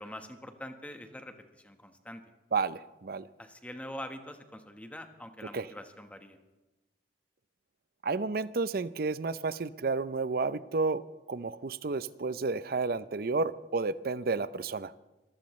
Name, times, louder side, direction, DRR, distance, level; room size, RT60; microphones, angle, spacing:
voice 1, 0.0-2.2 3.4-6.4, left 1 dB, 10° left, 6 dB, 1.2 m, -44 dB
voice 2, 2.5-3.3 5.5-5.7 8.0-11.0 11.3-14.9, right 4 dB, 55° right, 15 dB, 0.6 m, -31 dB
25.0 x 15.5 x 3.2 m, 1.1 s
head